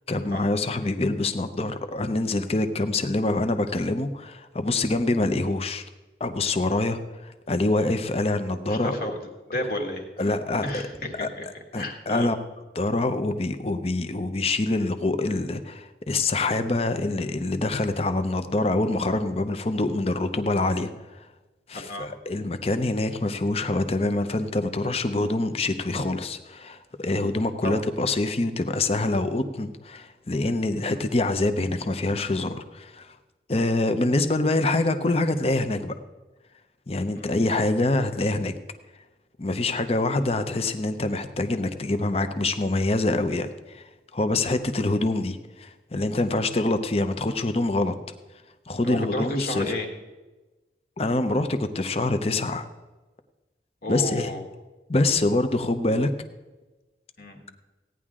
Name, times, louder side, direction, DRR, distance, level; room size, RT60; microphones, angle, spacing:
voice 1, 0.1-5.8 6.2-9.0 10.2-10.8 11.1-12.4 12.7-20.9 21.7-33.1 33.5-35.9 36.9-38.5 39.4-48.0 48.7-49.7 51.0-52.7 53.9-54.3 54.9-56.1, left 2 dB, 35° left, 10 dB, 0.7 m, -25 dB
voice 2, 8.7-9.1 9.5-10.0 10.6-11.5 11.8-12.3 21.7-22.1 27.6-27.8 30.9-31.0 37.1-37.4 48.8-49.9 53.8-54.4 57.2-57.5, left 1 dB, 50° left, 3 dB, 1.6 m, -31 dB
16.5 x 9.8 x 3.7 m, 1.2 s
head